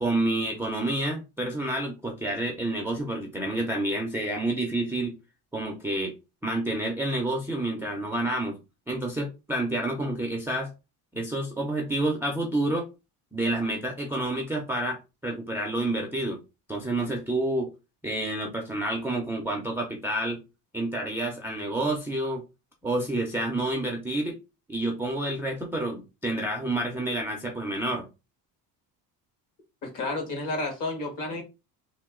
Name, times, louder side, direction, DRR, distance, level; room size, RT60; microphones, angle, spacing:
voice 1, 0.0-5.2 5.5-6.1 6.4-8.6 8.9-10.7 11.1-12.9 13.3-16.4 16.7-17.7 18.0-20.4 20.7-22.4 22.8-24.4 24.7-28.1, right 1 dB, 5° right, 0 dB, 0.3 m, -29 dB
voice 2, 29.8-31.4, left 2 dB, 50° left, 3 dB, 1.5 m, -31 dB
2.9 x 2.9 x 3.5 m, 0.27 s
cardioid pair, 155°, 40 cm